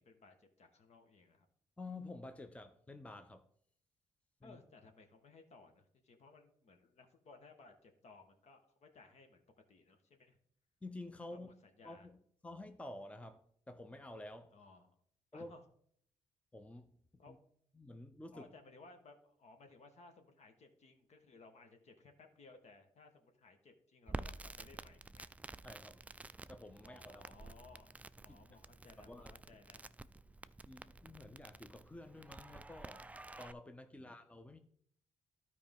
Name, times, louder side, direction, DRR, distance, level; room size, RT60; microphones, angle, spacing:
voice 1, 0.0-1.5 4.4-9.4 9.7-10.4 11.2-12.1 14.5-14.9 15.3-15.6 17.2-17.3 18.3-25.3 26.8-28.0 28.2-29.9 34.0-34.1, left 3 dB, 60° left, 1.5 m, -60 dB
voice 2, 1.8-3.4 4.4-4.6 10.8-11.5 11.8-12.2 12.4-14.5 15.3-15.5 16.5-16.9 17.3-17.4 17.8-18.5 25.6-26.0 26.5-27.3 28.3-28.4 29.0-29.4 30.6-33.1 33.4-34.6, left 2 dB, 10° left, 0.7 m, -50 dB
Crackle, 24.1-33.5, right 2 dB, 10° right, 0.3 m, -50 dB
12.5 x 4.8 x 3.6 m
cardioid pair, 70°, 13 cm